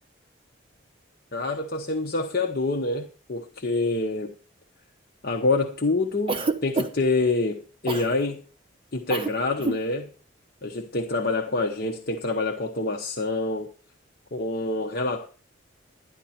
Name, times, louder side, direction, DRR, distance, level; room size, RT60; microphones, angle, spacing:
voice 1, 1.3-4.3 5.2-8.4 8.9-10.1 10.6-13.7 14.3-15.3, left 3 dB, 50° left, 1.0 m, -26 dB
Cough, 6.3-7.1 7.9-8.1 9.1-9.3 9.6-9.8, right 3 dB, 25° right, 1.0 m, -27 dB
12.0 x 10.5 x 4.4 m
head